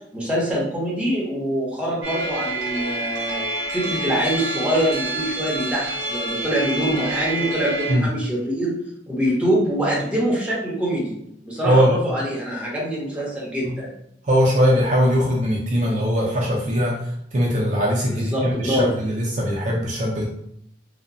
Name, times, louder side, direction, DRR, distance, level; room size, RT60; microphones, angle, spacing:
voice 1, 0.1-3.4 3.7-8.7 9.1-11.1 11.4-13.9 18.1-18.9, right 1 dB, 5° right, -5 dB, 0.7 m, -24 dB
sound 1, 2.0-7.9, right 1 dB, 85° right, 0.8 m, -28 dB
voice 2, 11.6-12.0 13.6-13.7 14.3-16.9 17.3-20.3, equal, 45° right, -3 dB, 0.4 m, -20 dB
2.8 x 2.0 x 2.6 m, 0.73 s
head